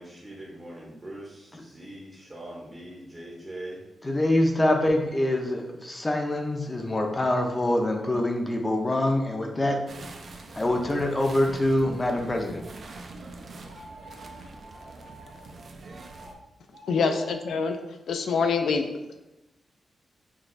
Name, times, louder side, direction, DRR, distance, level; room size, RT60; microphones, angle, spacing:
voice 1, 0.0-3.8 4.6-4.8 16.9-17.1, right 1 dB, 25° right, -4 dB, 0.7 m, -41 dB
voice 2, 4.0-9.8 10.5-12.6, left 1 dB, 20° left, 3 dB, 0.5 m, -25 dB
sound 1, 9.9-16.3, right 3 dB, 55° right, 0.4 m, -44 dB
sound 2, 13.6-15.5 15.9-16.3 16.7-17.5, right 1 dB, 70° right, 1.1 m, -49 dB
voice 3, 16.9-17.8 18.1-18.9, left 5 dB, 80° left, 6 dB, 0.4 m, -25 dB
5.9 x 2.3 x 2.5 m, 0.93 s
wide cardioid pair, 125°, 0 cm